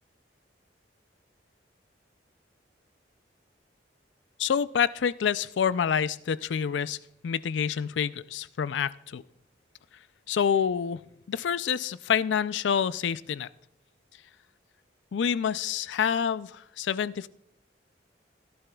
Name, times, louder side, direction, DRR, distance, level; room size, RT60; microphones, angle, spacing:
voice 1, 4.4-7.0 7.2-9.2 10.3-11.0 11.3-13.5 15.1-17.3, left 7 dB, 75° left, 17 dB, 0.4 m, -27 dB
17.0 x 11.0 x 2.3 m, 0.75 s
head